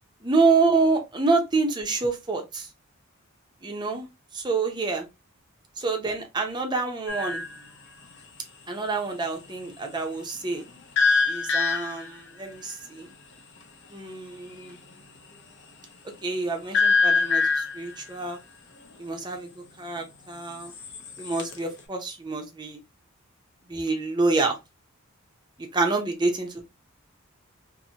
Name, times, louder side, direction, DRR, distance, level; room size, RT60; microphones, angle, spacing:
voice 1, 0.2-2.7 3.6-4.1 4.3-5.0 5.8-7.4 8.7-10.6 11.3-13.1 13.9-14.8 16.2-17.5 17.7-18.4 19.0-19.5 19.8-20.7 21.2-22.8 23.7-24.6 25.7-26.6, right 3 dB, 20° right, 3 dB, 0.6 m, -27 dB
sound 1, 7.1-7.6 11.0-12.2 16.7-17.9 20.6-21.6, left 4 dB, 60° left, 0.7 m, -23 dB
2.8 x 2.6 x 2.7 m, 0.24 s
head